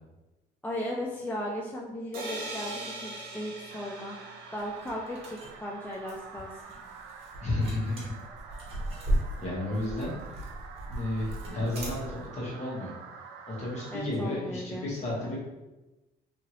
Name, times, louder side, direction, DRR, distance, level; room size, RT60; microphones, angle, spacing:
voice 1, 0.6-4.2 4.5-6.8 13.9-14.9 15.2-15.3, equal, 10° left, -1 dB, 0.3 m, -36 dB
sound 1, 2.1-5.9, right 1 dB, 60° right, 1.0 m, -41 dB
sound 2, 3.7-14.0, right 6 dB, 90° right, 0.4 m, -47 dB
sound 3, 4.6-12.3, right 1 dB, 40° right, 1.2 m, -36 dB
voice 2, 7.4-8.1 9.4-10.2 10.8-12.9 13.5-15.4, left 1 dB, 40° left, -5 dB, 1.2 m, -32 dB
2.8 x 2.6 x 3.0 m, 1.1 s
cardioid pair, 110°, 17 cm